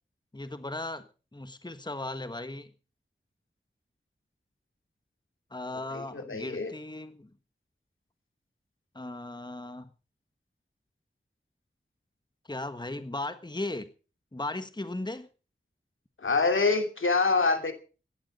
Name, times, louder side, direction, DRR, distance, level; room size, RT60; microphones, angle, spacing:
voice 1, 0.3-1.0 1.3-2.7 5.5-7.3 8.9-9.9 12.4-13.9 14.3-15.3, left 2 dB, 20° left, 11 dB, 1.4 m, -37 dB
voice 2, 5.9-6.7 16.2-17.7, left 3 dB, 80° left, 7 dB, 2.8 m, -26 dB
16.0 x 12.5 x 5.4 m, 0.36 s
cardioid pair, 45°, 20 cm